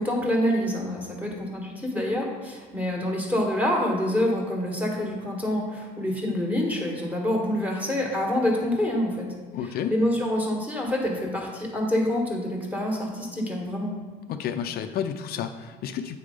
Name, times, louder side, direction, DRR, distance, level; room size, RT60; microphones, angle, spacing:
voice 1, 0.0-9.3 9.6-13.9, left 1 dB, 10° right, -2 dB, 1.6 m, -26 dB
voice 2, 9.5-9.9 14.3-16.2, left 8 dB, 65° left, 7 dB, 0.5 m, -31 dB
8.3 x 3.4 x 5.2 m, 1.4 s
cardioid pair, 110°, 17 cm